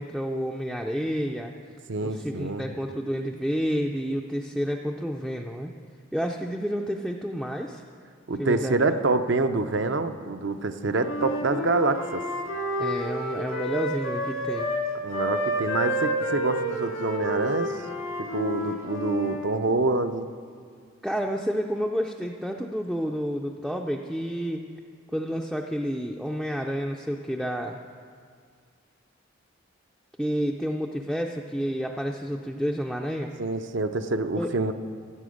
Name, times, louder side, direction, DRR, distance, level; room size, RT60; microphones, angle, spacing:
voice 1, 0.0-1.5 2.0-5.7 6.1-7.8 8.4-8.8 12.8-14.8 21.0-24.6 25.1-27.8 30.2-33.3 34.3-34.5, equal, ahead, 0 dB, 0.4 m, -30 dB
voice 2, 1.9-2.7 8.3-12.2 15.0-17.7 18.2-20.3 33.4-34.7, right 3 dB, 60° right, 9 dB, 0.6 m, -26 dB
Wind instrument woodwind instrument, 10.9-14.8 15.1-19.4, equal, 85° left, 2.4 m, -30 dB
15.0 x 7.7 x 6.4 m, 2.1 s
head